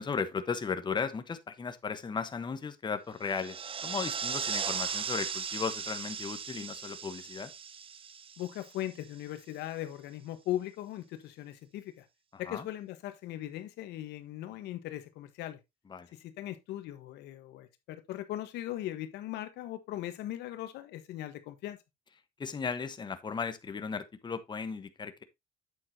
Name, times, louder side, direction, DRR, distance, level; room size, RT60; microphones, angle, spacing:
voice 1, 0.0-7.5 12.3-12.7 15.9-16.1 22.4-25.2, left 5 dB, 25° left, 1.1 m, -36 dB
sound 1, 3.2-9.1, right 7 dB, 30° right, 0.6 m, -37 dB
voice 2, 8.4-12.1 12.4-15.6 16.1-21.8, left 13 dB, 80° left, 1.3 m, -39 dB
8.6 x 7.7 x 2.8 m
cardioid pair, 110°, 17 cm